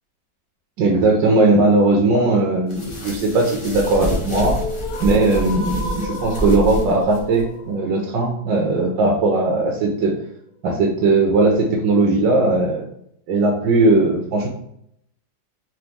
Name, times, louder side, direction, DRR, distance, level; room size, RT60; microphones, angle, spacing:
voice 1, 0.8-4.6 5.0-10.1 10.6-12.9 13.3-14.5, right 2 dB, 75° right, -1 dB, 1.4 m, -18 dB
sound 1, 2.7-7.4, left 1 dB, 40° left, 0.4 m, -28 dB
sound 2, 3.6-9.6, left 2 dB, 65° left, 1.0 m, -34 dB
4.0 x 3.0 x 3.4 m, 0.73 s
omnidirectional pair, 2.1 m